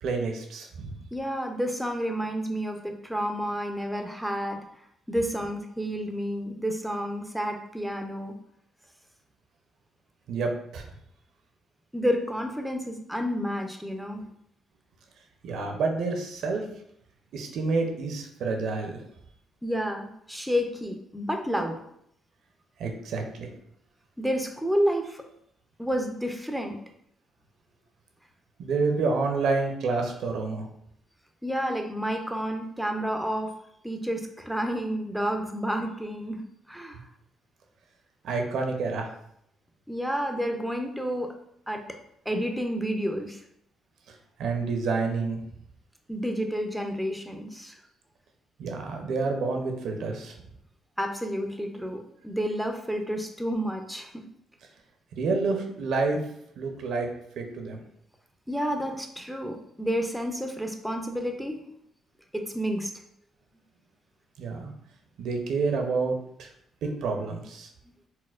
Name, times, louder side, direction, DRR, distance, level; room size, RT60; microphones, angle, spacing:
voice 1, 0.0-0.9 10.3-10.8 15.4-16.6 17.3-19.0 22.8-23.5 28.6-30.7 38.2-39.1 44.4-45.4 48.6-50.3 55.2-56.2 56.6-57.1 57.4-57.8 64.4-64.7 65.2-66.5 66.8-67.7, right 4 dB, 75° right, 3 dB, 0.5 m, -28 dB
voice 2, 1.1-4.6 5.1-8.3 11.9-14.2 19.6-21.8 24.2-25.2 25.8-26.8 31.4-33.5 33.8-36.4 36.7-37.1 39.9-41.3 41.7-41.8 42.3-43.4 46.1-47.8 51.0-54.2 58.5-61.6 62.3-62.9, equal, ahead, 3 dB, 0.4 m, -30 dB
4.2 x 2.1 x 2.3 m, 0.72 s
cardioid pair, 90°, 0 cm